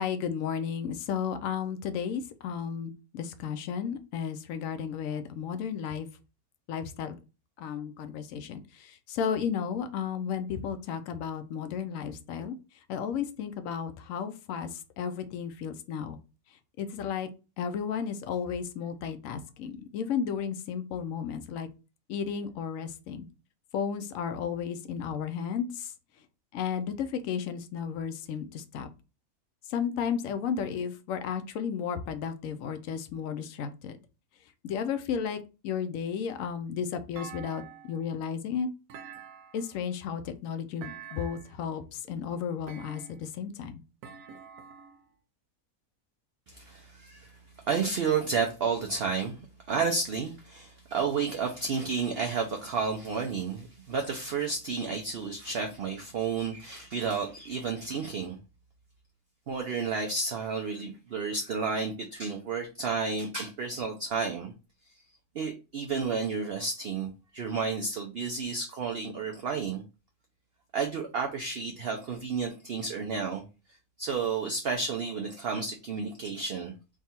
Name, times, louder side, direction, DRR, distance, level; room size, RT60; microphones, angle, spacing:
voice 1, 0.0-6.1 6.7-7.1 7.6-12.6 12.9-16.2 16.8-17.3 17.6-21.7 22.1-23.3 23.7-25.9 26.5-28.9 29.7-33.9 34.6-35.4 35.6-37.6 37.9-38.7 39.5-43.7, left 7 dB, 70° left, 9 dB, 0.9 m, -33 dB
Thump thud, 37.2-38.1 38.9-39.8 40.8-41.6 42.7-43.4 44.0-45.0, right 7 dB, 85° right, 1.1 m, -46 dB
voice 2, 46.5-58.4 59.5-64.5 65.3-69.8 70.7-73.4 74.0-76.7, right 5 dB, 65° right, 3 dB, 0.6 m, -31 dB
3.6 x 2.3 x 4.1 m, 0.31 s
omnidirectional pair, 1.6 m